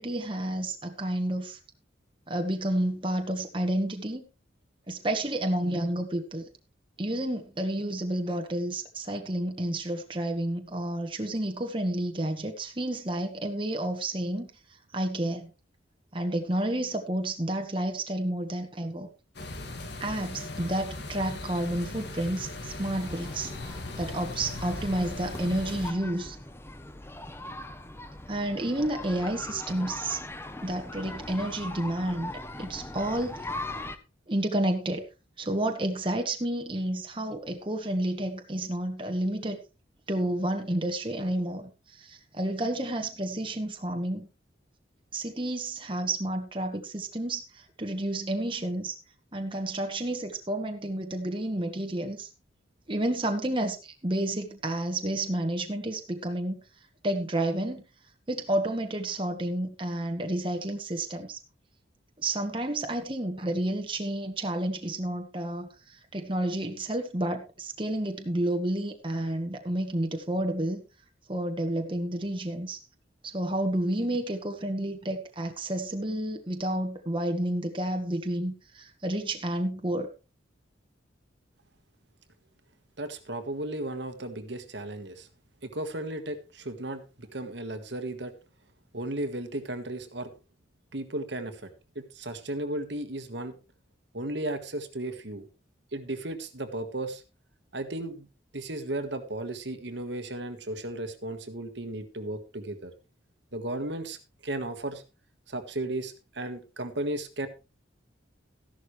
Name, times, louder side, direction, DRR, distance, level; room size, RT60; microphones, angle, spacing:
voice 1, 0.0-1.6 2.3-4.2 4.9-6.5 7.0-14.5 14.9-15.5 16.1-19.1 20.0-23.5 24.0-26.4 28.3-30.2 30.6-32.3 32.6-33.5 34.3-35.0 35.4-39.6 40.1-44.3 45.1-49.0 49.3-52.3 52.9-56.6 57.0-57.8 58.3-61.4 62.2-70.8 71.3-72.8 73.2-80.1, right 1 dB, 25° right, 5 dB, 1.3 m, -30 dB
sound 1, 19.3-25.9, left 2 dB, 55° left, 2.1 m, -38 dB
sound 2, 23.0-34.0, left 2 dB, 10° left, 0.8 m, -41 dB
voice 2, 83.0-85.3 85.6-88.3 88.9-90.3 90.9-91.7 91.9-93.5 94.1-95.5 95.9-97.2 97.7-98.3 98.5-102.9 103.5-104.2 104.4-105.0 105.5-107.5, right 1 dB, 65° right, 9 dB, 1.5 m, -35 dB
14.5 x 11.5 x 3.2 m, 0.30 s
head